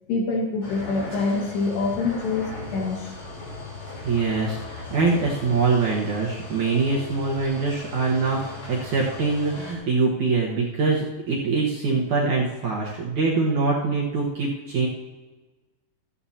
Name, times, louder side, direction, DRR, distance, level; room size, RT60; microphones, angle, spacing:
voice 1, 0.1-3.1, left 3 dB, 70° left, 0 dB, 3.9 m, -26 dB
sound 1, 0.6-9.7, left 3 dB, 35° left, 3.8 m, -38 dB
voice 2, 4.0-14.9, right 4 dB, 65° right, -3 dB, 2.0 m, -24 dB
14.5 x 14.0 x 2.9 m, 1.2 s
omnidirectional pair, 5.1 m